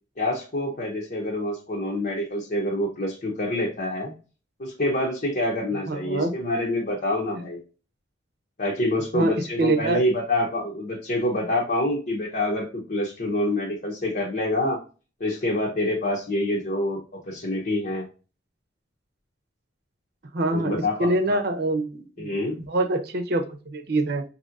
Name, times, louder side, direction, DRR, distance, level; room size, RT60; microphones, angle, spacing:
voice 1, 0.2-4.1 4.6-7.6 8.6-14.8 15.2-18.1 20.5-21.4 22.2-22.6, left 1 dB, 50° left, -4 dB, 0.8 m, -26 dB
voice 2, 5.9-6.3 9.1-10.0 20.3-20.7 21.0-22.3 22.7-24.2, right 2 dB, 60° right, 8 dB, 0.7 m, -25 dB
5.3 x 2.8 x 2.5 m, 0.34 s
head